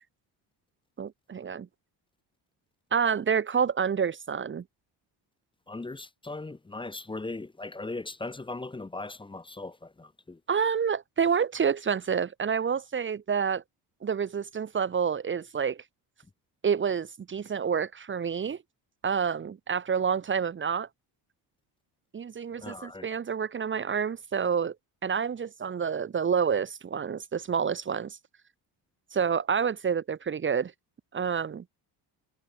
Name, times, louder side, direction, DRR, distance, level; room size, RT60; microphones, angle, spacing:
voice 1, 1.0-1.7 2.9-4.6 10.5-13.6 14.0-15.8 16.6-18.6 19.0-20.9 22.1-24.7 25.0-28.2 29.1-30.7 31.1-31.6, right 6 dB, 30° right, 1.4 m, -28 dB
voice 2, 5.7-10.4 22.6-23.1, left 2 dB, 10° left, 1.7 m, -38 dB
cardioid pair, 145°, 40 cm